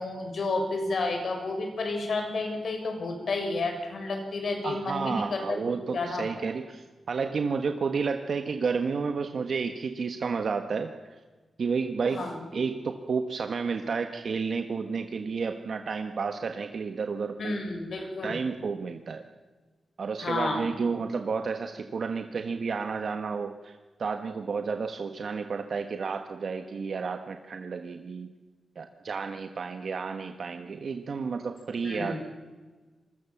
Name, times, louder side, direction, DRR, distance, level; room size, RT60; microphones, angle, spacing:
voice 1, 0.0-5.6 5.9-6.2 12.1-12.4 17.4-18.3 20.2-20.7 31.8-32.2, left 3 dB, 65° left, 4 dB, 6.5 m, -31 dB
voice 2, 4.6-11.2 11.6-12.3 12.5-17.6 18.2-19.2 20.0-28.3 28.7-32.2, right 5 dB, 60° right, 6 dB, 1.5 m, -31 dB
26.5 x 22.0 x 7.3 m, 1.3 s
wide cardioid pair, 115°, 0 cm